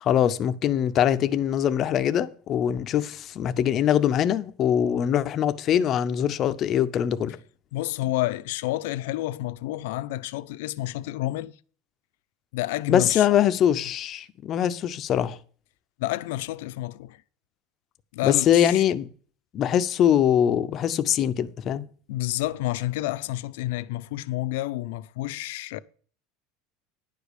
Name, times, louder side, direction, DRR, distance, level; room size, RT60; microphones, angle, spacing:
voice 1, 0.0-7.4 12.9-15.4 18.2-19.1 19.5-21.8, left 10 dB, 30° left, 0.6 m, -23 dB
voice 2, 7.7-11.5 12.5-13.3 16.0-17.2 18.1-18.9 22.1-25.8, left 16 dB, 75° left, 0.6 m, -29 dB
10.5 x 5.0 x 8.2 m
cardioid pair, 170°, 0 cm